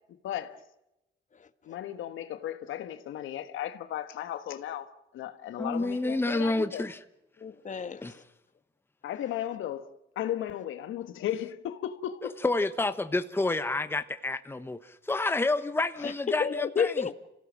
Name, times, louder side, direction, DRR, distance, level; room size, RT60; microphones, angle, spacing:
voice 1, 0.2-0.6 1.7-4.9 5.1-6.9 9.0-9.9 10.1-12.4 16.0-16.1, left 11 dB, 80° left, 1.4 m, -35 dB
voice 2, 5.6-7.0 8.0-8.2 12.4-14.8 15.1-17.1, left 2 dB, 10° left, 1.1 m, -29 dB
voice 3, 7.4-8.2 16.0-17.1, left 6 dB, 40° left, 1.5 m, -31 dB
27.5 x 17.0 x 7.4 m
cardioid pair, 90°, 20 cm